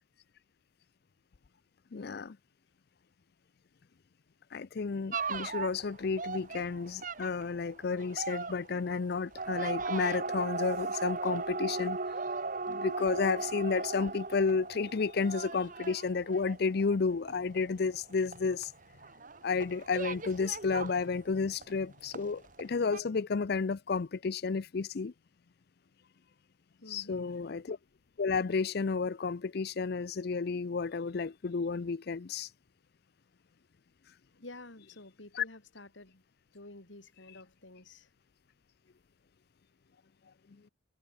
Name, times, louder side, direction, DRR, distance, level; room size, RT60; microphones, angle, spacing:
voice 1, 1.9-2.4 4.5-12.0 12.7-18.7 19.4-25.1 26.9-27.8 28.2-32.5 35.3-35.4, left 4 dB, 55° left, 0.5 m, -32 dB
sound 1, 5.1-21.8 22.1-22.7 22.9-23.0, right 4 dB, 45° right, 2.0 m, -38 dB
voice 2, 26.8-27.4 34.4-36.2 36.5-38.1, left 2 dB, 80° left, 3.5 m, -50 dB
head